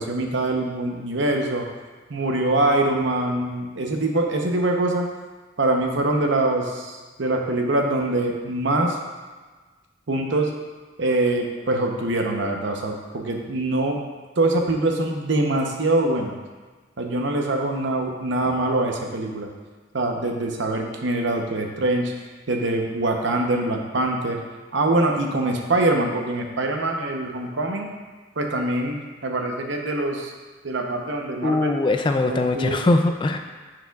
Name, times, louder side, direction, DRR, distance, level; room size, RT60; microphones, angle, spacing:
voice 1, 0.0-1.7 2.1-5.1 5.6-9.0 10.1-10.5 11.0-14.0 14.4-16.3 17.0-19.5 19.9-22.1 22.5-24.4 24.7-27.9 28.4-30.3 30.6-31.7 32.3-32.8, right 2 dB, 70° right, 2 dB, 0.8 m, -24 dB
voice 2, 31.4-33.4, left 2 dB, 25° left, 5 dB, 0.3 m, -21 dB
10.0 x 4.8 x 2.3 m, 1.4 s
head